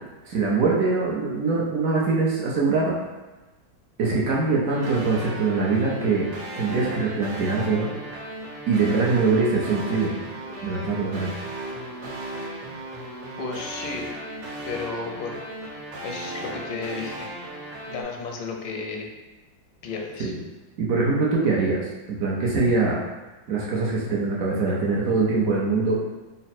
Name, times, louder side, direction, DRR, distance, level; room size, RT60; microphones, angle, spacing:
voice 1, 0.2-2.9 4.0-6.3 6.5-7.9 8.7-10.1 10.6-11.3 20.2-20.4 20.8-23.0 23.5-26.0, right 3 dB, 65° right, -4 dB, 0.8 m, -23 dB
sound 1, 4.7-18.0, right 1 dB, 85° right, 1.5 m, -36 dB
voice 2, 13.4-15.4 16.0-17.3 17.9-19.1 19.8-20.3, left 4 dB, 90° left, 2 dB, 1.4 m, -33 dB
3.9 x 2.0 x 4.2 m, 1.1 s
omnidirectional pair, 2.0 m